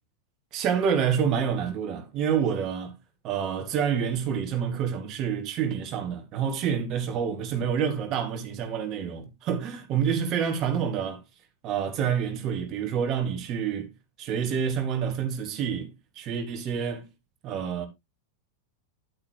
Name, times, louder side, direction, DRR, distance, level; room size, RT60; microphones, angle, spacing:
voice 1, 0.5-2.9 3.2-11.2 11.6-13.9 14.2-15.9 16.2-17.1 17.4-17.9, right 7 dB, 35° right, 2.2 m, -28 dB
10.0 x 8.7 x 3.0 m
figure-of-eight pair, 90°, 0 cm